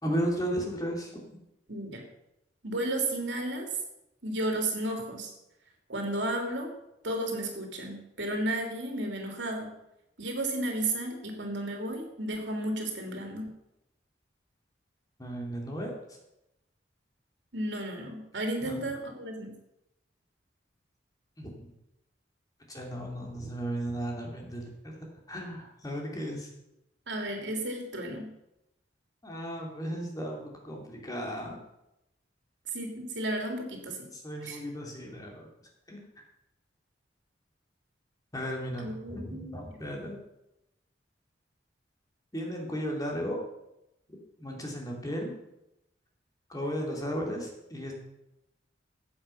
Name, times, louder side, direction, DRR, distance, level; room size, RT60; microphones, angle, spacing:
voice 1, 0.0-1.1 15.2-15.9 18.6-18.8 21.4-21.7 22.7-25.0 25.3-26.5 29.2-31.6 34.1-35.5 35.9-36.0 38.3-40.2 42.3-43.4 44.4-45.4 46.5-47.9, equal, 20° left, 0 dB, 2.9 m, -35 dB
voice 2, 1.7-2.0 2.6-3.7 4.2-5.3 5.9-6.7 7.0-9.7 10.2-13.5 17.5-19.5 27.1-28.3 32.7-34.1 34.4-34.6 38.8-39.8, right 1 dB, 80° right, 2 dB, 3.1 m, -33 dB
14.5 x 8.6 x 5.8 m, 0.86 s
head